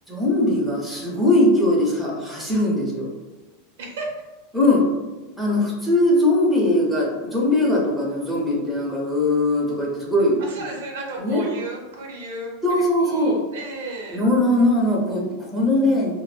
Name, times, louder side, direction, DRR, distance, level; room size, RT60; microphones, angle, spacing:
voice 1, 0.1-3.1 4.5-4.8 5.4-10.4 11.2-11.5 12.6-13.4 14.1-16.2, left 1 dB, ahead, -4 dB, 0.7 m, -20 dB
voice 2, 3.8-4.2 10.4-12.5 13.0-14.2, right 2 dB, 80° right, -1 dB, 0.7 m, -33 dB
2.1 x 2.0 x 3.1 m, 1.2 s
supercardioid pair, 130°, 0 cm